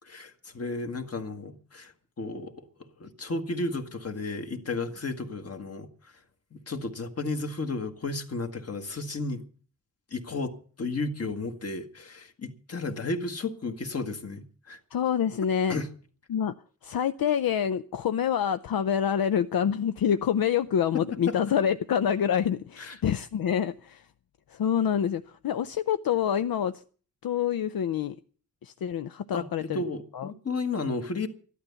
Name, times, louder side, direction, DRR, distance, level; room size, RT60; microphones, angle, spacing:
voice 1, 0.0-6.1 6.5-9.4 10.1-14.8 15.7-15.9 20.9-21.4 22.8-23.0 29.3-31.3, left 3 dB, 45° left, 1.6 m, -33 dB
voice 2, 14.9-15.8 16.3-16.5 16.8-24.0 24.5-26.7 27.2-28.2 28.6-29.8 30.1-30.3, left 8 dB, 75° left, 0.6 m, -26 dB
13.5 x 12.0 x 6.9 m
wide cardioid pair, 155°, 35 cm